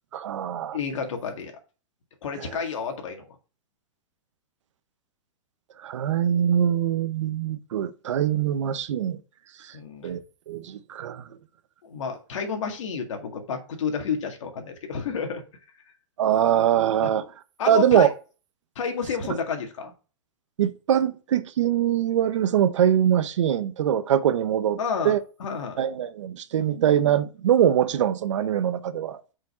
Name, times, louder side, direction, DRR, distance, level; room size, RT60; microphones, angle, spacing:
voice 1, 0.1-0.8 2.4-2.6 5.8-9.2 9.6-9.8 10.0-11.3 16.2-17.2 17.7-18.1 20.6-24.8 25.0-25.2 25.8-29.2, right 10 dB, 70° right, 0.8 m, -23 dB
voice 2, 0.7-1.5 2.2-3.3 9.7-10.2 11.8-15.4 17.0-17.1 17.6-18.1 18.8-19.9 24.8-25.8, left 6 dB, 70° left, 2.1 m, -30 dB
5.9 x 5.2 x 4.3 m
supercardioid pair, 175°, 17 cm